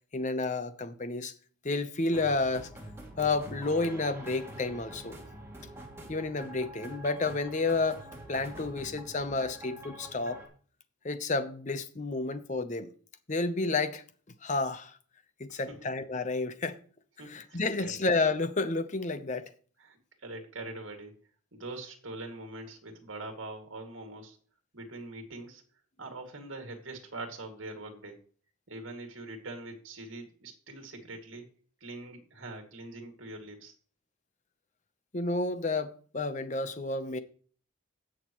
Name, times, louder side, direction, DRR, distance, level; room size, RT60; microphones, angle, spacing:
voice 1, 0.1-1.3 1.6-2.7 3.2-5.2 6.1-10.4 11.0-12.9 13.3-14.0 14.4-15.0 15.4-16.8 17.3-19.5 35.1-37.2, left 3 dB, 35° left, 0.8 m, -31 dB
sound 1, 2.1-10.5, right 1 dB, 10° right, 2.4 m, -46 dB
voice 2, 15.5-15.9 17.2-18.0 19.8-21.1 21.5-24.4 24.7-25.6 26.0-28.2 28.7-31.5 31.8-33.7, right 2 dB, 70° right, 2.3 m, -43 dB
17.0 x 6.5 x 3.1 m
head